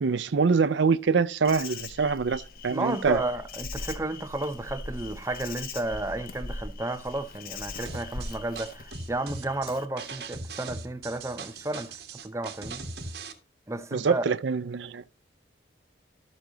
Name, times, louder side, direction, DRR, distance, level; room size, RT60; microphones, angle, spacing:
voice 1, 0.0-3.2 13.9-15.1, right 5 dB, 85° right, 0.5 m, -25 dB
Insect, 1.4-9.9, left 3 dB, 50° left, 1.0 m, -40 dB
voice 2, 2.7-11.9 12.2-12.8 13.7-14.2, right 2 dB, 15° right, 0.6 m, -32 dB
sound 1, 7.9-13.3, right 3 dB, 60° right, 1.7 m, -39 dB
12.5 x 8.0 x 3.9 m
head